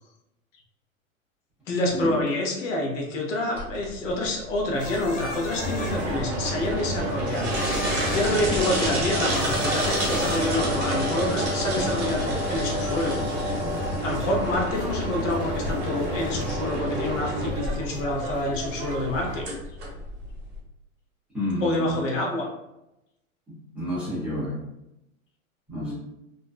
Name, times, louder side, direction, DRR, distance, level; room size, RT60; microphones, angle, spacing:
voice 1, 1.7-7.6 8.1-13.2 14.0-19.5 21.6-22.5 25.8-25.9, left 1 dB, 60° left, 0 dB, 0.8 m, -27 dB
sound 1, 3.6-20.6, equal, 25° right, 0.8 m, -28 dB
sound 2, 4.8-6.2 7.4-8.3 9.3-10.7, left 2 dB, 80° left, 1.2 m, -37 dB
sound 3, 5.2-19.4, right 3 dB, 75° right, 0.6 m, -36 dB
voice 2, 21.3-22.1 23.5-24.6 25.7-25.9, equal, 5° right, -12 dB, 0.4 m, -30 dB
2.5 x 2.1 x 2.3 m, 0.89 s
hypercardioid pair, 135°, 42 cm